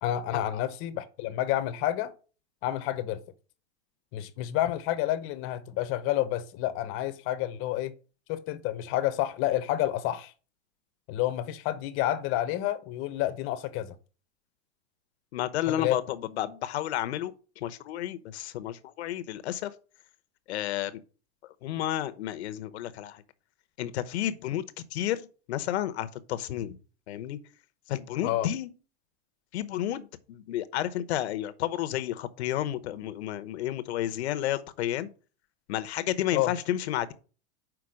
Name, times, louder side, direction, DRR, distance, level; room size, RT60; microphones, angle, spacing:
voice 1, 0.0-2.1 2.6-3.2 4.1-7.9 8.3-10.3 11.1-13.9 15.7-16.0 28.2-28.5 36.3-36.5, left 13 dB, 40° left, 0.8 m, -29 dB
voice 2, 15.3-19.7 20.5-21.0 21.6-23.2 23.8-24.6 24.9-26.8 27.1-27.4 27.9-28.7 29.5-35.1 35.7-37.1, left 12 dB, 80° left, 0.9 m, -31 dB
6.0 x 4.6 x 6.3 m
supercardioid pair, 145°, 32 cm